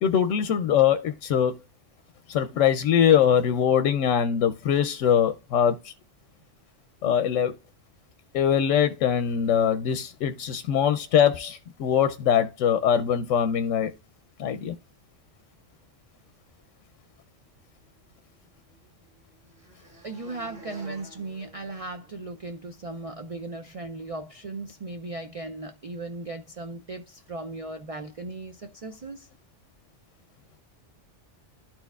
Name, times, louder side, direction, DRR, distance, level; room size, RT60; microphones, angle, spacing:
voice 1, 0.0-1.6 2.3-5.9 7.0-7.6 8.3-13.9 14.4-14.8, left 8 dB, 90° left, 0.9 m, -22 dB
sound 1, 17.8-22.5, right 1 dB, 45° right, 3.3 m, -51 dB
voice 2, 20.0-29.3, right 2 dB, 65° right, 0.3 m, -37 dB
12.0 x 4.4 x 2.3 m
omnidirectional pair, 1.3 m